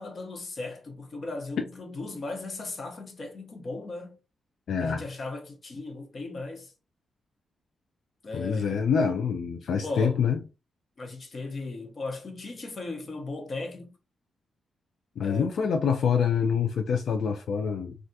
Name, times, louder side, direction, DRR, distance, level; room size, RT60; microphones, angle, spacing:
voice 1, 0.0-4.1 4.8-6.7 8.2-8.8 9.8-10.2 11.0-13.9 15.2-15.5, left 2 dB, 45° left, 0.8 m, -37 dB
voice 2, 4.7-5.0 8.3-10.4 15.2-18.0, left 6 dB, 75° left, 0.4 m, -26 dB
3.3 x 2.4 x 2.7 m
cardioid pair, 110°, 0 cm